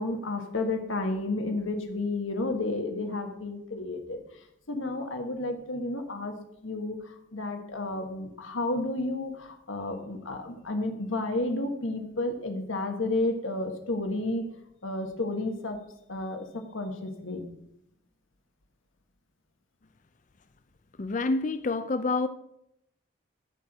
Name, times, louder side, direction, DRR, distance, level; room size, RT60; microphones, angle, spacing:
voice 1, 0.0-4.2 4.7-6.3 6.6-14.4 14.8-15.8 16.1-17.5, left 2 dB, 85° left, 1.5 m, -31 dB
voice 2, 21.0-22.3, left 3 dB, 40° left, 0.5 m, -27 dB
13.5 x 4.5 x 6.5 m
head